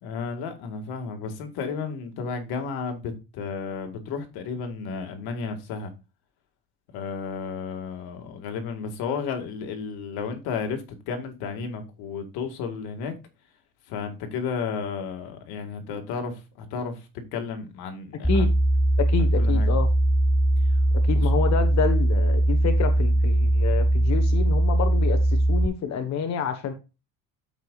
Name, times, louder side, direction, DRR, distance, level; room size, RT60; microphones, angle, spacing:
voice 1, 0.0-5.9 6.9-13.1 13.9-18.5 19.2-19.7 21.1-21.3, left 5 dB, 85° left, 1.9 m, -33 dB
sound 1, 18.2-25.7, right 1 dB, ahead, 0.3 m, -21 dB
voice 2, 19.0-19.9 21.1-26.7, left 6 dB, 45° left, 1.3 m, -28 dB
13.5 x 4.9 x 2.4 m
cardioid pair, 135°, 37 cm